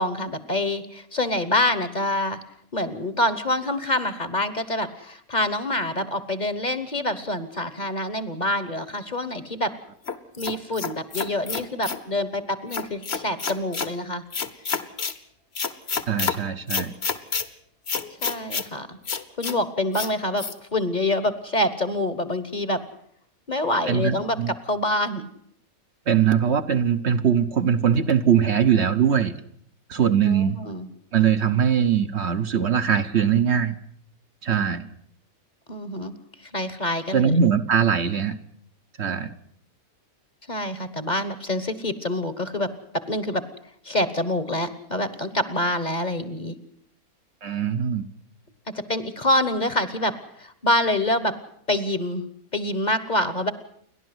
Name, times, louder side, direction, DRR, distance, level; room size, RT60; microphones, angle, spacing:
voice 1, 0.0-2.4 2.7-9.7 10.4-14.2 18.2-19.0 19.4-22.8 23.5-25.3 30.3-30.9 35.7-36.1 36.4-37.4 40.5-43.4 43.8-46.5 48.7-51.3 51.7-52.2 52.5-53.5, left 1 dB, 35° left, 13 dB, 1.2 m, -26 dB
sound 1, 10.1-12.0 12.7-13.9 14.3-15.2 15.6-16.4 16.7-17.5 17.9-18.7 19.1-19.6 19.9-20.1 20.4-20.5, left 5 dB, 50° left, 1.4 m, -28 dB
voice 2, 16.1-16.9 23.9-24.5 26.1-29.3 29.9-30.6 31.1-33.8 34.4-34.9 37.1-38.4 39.0-39.4 47.4-48.1, right 8 dB, 55° right, 7 dB, 1.2 m, -21 dB
30.0 x 11.5 x 7.9 m, 0.67 s
omnidirectional pair, 1.5 m